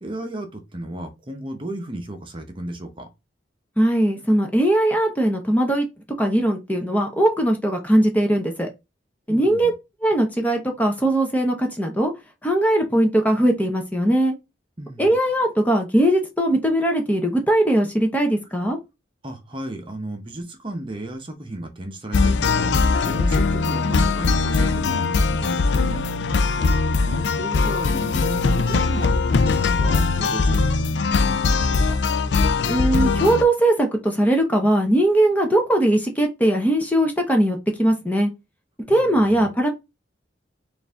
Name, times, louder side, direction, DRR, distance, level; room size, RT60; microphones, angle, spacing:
voice 1, 0.0-3.1 9.3-9.7 14.8-15.1 19.2-26.1 26.5-32.0 38.9-39.5, right 1 dB, 25° right, 0.8 m, -34 dB
voice 2, 3.8-5.9 6.2-8.7 9.3-9.7 10.0-12.1 12.4-14.3 15.0-18.8 32.7-38.3 38.9-39.7, right 1 dB, 10° left, 0.7 m, -20 dB
sound 1, 22.1-33.4, left 4 dB, 65° left, 0.4 m, -20 dB
4.6 x 2.6 x 3.5 m
head